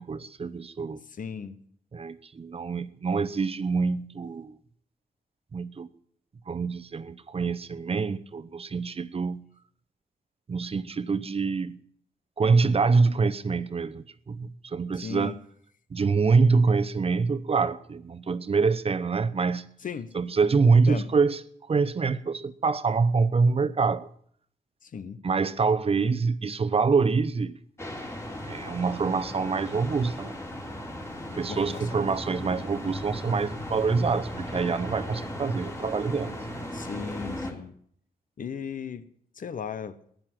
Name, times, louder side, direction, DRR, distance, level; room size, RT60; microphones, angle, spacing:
voice 1, 0.0-1.0 1.9-4.5 5.5-5.9 6.5-9.4 10.5-11.8 12.4-15.3 15.9-19.6 20.1-21.4 21.7-24.1 25.2-27.6 28.4-30.4 31.3-36.4, right 4 dB, 40° right, 0.8 m, -25 dB
voice 2, 1.1-1.6 14.9-15.4 19.8-20.1 20.8-21.1 24.8-25.2 31.5-32.1 36.7-37.7 38.4-39.1 39.3-40.0, left 6 dB, 60° left, 1.1 m, -36 dB
sound 1, 27.8-37.5, left 1 dB, 15° left, 3.3 m, -36 dB
15.5 x 10.5 x 7.6 m
wide cardioid pair, 110°, 16 cm